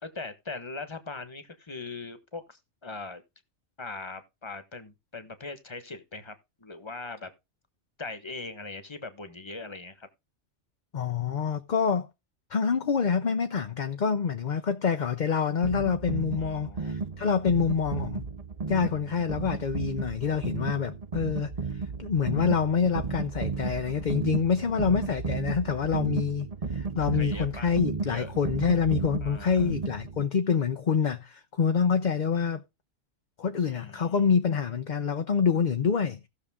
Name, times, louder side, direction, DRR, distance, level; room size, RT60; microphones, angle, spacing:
voice 1, 0.0-3.2 3.8-7.3 8.0-10.1 16.3-16.9 27.0-27.7 28.1-28.3 29.2-29.7 33.6-34.2, left 3 dB, 25° left, 1.3 m, -40 dB
voice 2, 10.9-12.1 12.5-18.3 18.7-32.6 33.4-36.3, left 6 dB, 45° left, 0.8 m, -26 dB
sound 1, 15.6-30.3, right 4 dB, 35° right, 0.8 m, -34 dB
16.0 x 6.6 x 3.6 m
omnidirectional pair, 1.2 m